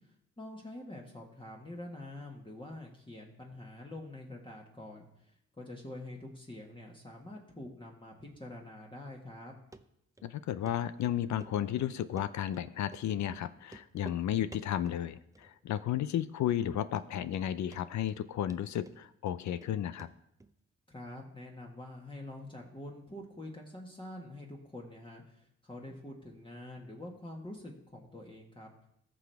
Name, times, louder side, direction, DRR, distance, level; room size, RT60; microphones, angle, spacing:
voice 1, 0.0-9.5 20.9-28.7, left 1 dB, 15° left, -1 dB, 1.6 m, -46 dB
Run, 9.7-9.8 10.2-10.3 10.7-10.8 11.0-11.5 11.8-12.7 12.9-13.1 13.3-13.4 13.7-14.2 14.5-15.0 15.4-15.8 16.1-16.2 16.6-16.7 17.0-17.5 17.7-18.2 18.5-19.7 20.0-20.1 20.4-20.5, right 2 dB, 10° right, 0.6 m, -51 dB
voice 2, 10.2-20.1, left 11 dB, 70° left, 14 dB, 0.5 m, -33 dB
14.5 x 6.1 x 3.4 m, 0.77 s
cardioid pair, 65°, 30 cm